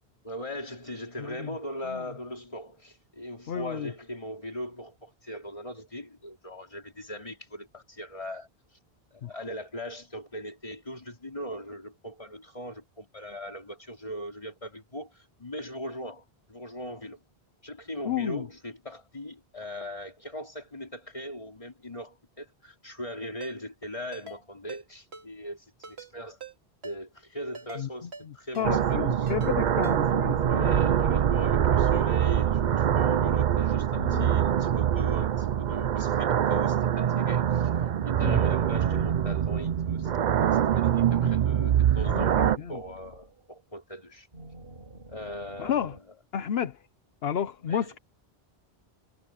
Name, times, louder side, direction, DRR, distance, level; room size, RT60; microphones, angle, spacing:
voice 1, 0.2-8.8 9.1-17.2 17.6-26.4 26.8-29.3 30.4-44.3 45.1-46.2 47.7-47.9, equal, 35° left, 3.7 m, -40 dB
voice 2, 3.5-3.9 9.2-9.3 18.1-18.4 27.8-27.9 28.6-30.8 34.0-34.3 38.2-38.4 42.0-42.8 45.6-45.9 46.3-46.8 47.2-48.0, left 9 dB, 75° left, 1.0 m, -31 dB
Ringtone, 23.4-23.5 24.1-24.4 24.7-24.8 25.1-25.3 25.8-26.1 26.4-26.5 26.8-27.0 27.5-27.8 28.1-28.3 28.5-28.7 29.3-29.5 29.8-30.0, right 4 dB, 85° right, 3.0 m, -43 dB
sound 1, 28.6-42.6, right 9 dB, 55° right, 0.6 m, -24 dB
sound 2, 39.7-43.7 44.3-46.0, right 2 dB, 70° right, 5.4 m, -49 dB
omnidirectional pair, 1.0 m